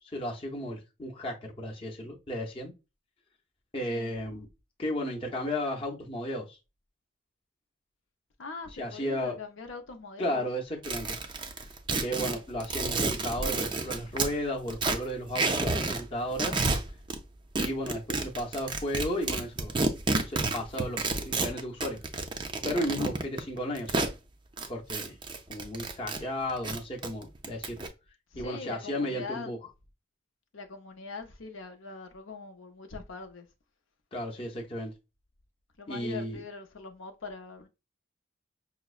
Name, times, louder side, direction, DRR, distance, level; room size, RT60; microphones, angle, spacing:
voice 1, 0.1-2.7 3.7-4.5 4.8-6.6 8.8-9.3 10.2-11.2 12.0-16.6 17.6-19.7 20.3-22.0 22.6-24.1 24.7-25.1 25.5-27.8 28.4-29.6 34.1-34.9 35.9-36.4, equal, 25° left, 0.7 m, -34 dB
voice 2, 8.4-10.4 28.3-29.5 30.5-33.5 35.8-37.7, left 4 dB, 70° left, 0.6 m, -42 dB
sound 1, 10.8-14.3 14.7-16.0 16.3-17.2 17.6-24.1 24.6-26.2 26.5-27.9, right 3 dB, 25° right, 0.4 m, -30 dB
5.7 x 2.0 x 2.3 m
head